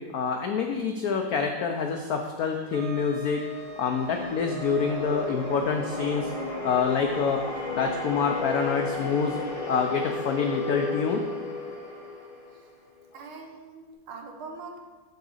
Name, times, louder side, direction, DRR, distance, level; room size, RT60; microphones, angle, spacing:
voice 1, 0.1-3.4 3.8-6.3 6.6-7.4 7.7-9.4 9.7-11.2, left 5 dB, 85° left, 4 dB, 0.8 m, -26 dB
sound 1, 2.7-13.1, left 3 dB, 60° left, 0.3 m, -35 dB
Wind instrument woodwind instrument, 2.7-7.1, right 5 dB, 70° right, 0.7 m, -41 dB
voice 2, 13.1-14.8, right 4 dB, 90° right, 3 dB, 1.8 m, -42 dB
7.2 x 3.9 x 6.4 m, 1.4 s
omnidirectional pair, 2.2 m